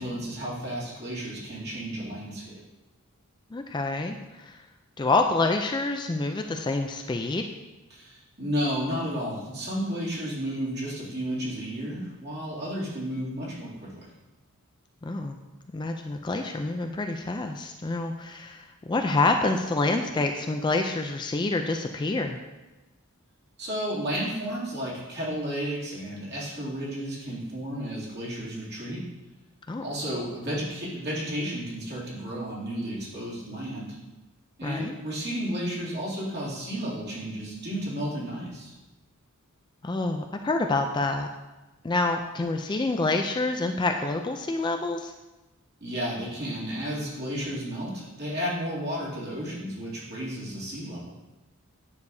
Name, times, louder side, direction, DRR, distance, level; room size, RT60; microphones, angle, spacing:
voice 1, 0.0-2.5 7.9-14.1 23.6-29.0 29.8-33.9 34.6-38.7 45.8-51.1, equal, 50° right, -7 dB, 2.6 m, -32 dB
voice 2, 3.5-4.6 5.0-7.4 15.0-15.4 15.7-22.4 29.7-29.8 34.6-34.9 39.8-41.3 41.8-45.1, left 3 dB, 20° left, 4 dB, 0.3 m, -27 dB
9.6 x 6.6 x 2.7 m, 1.1 s
head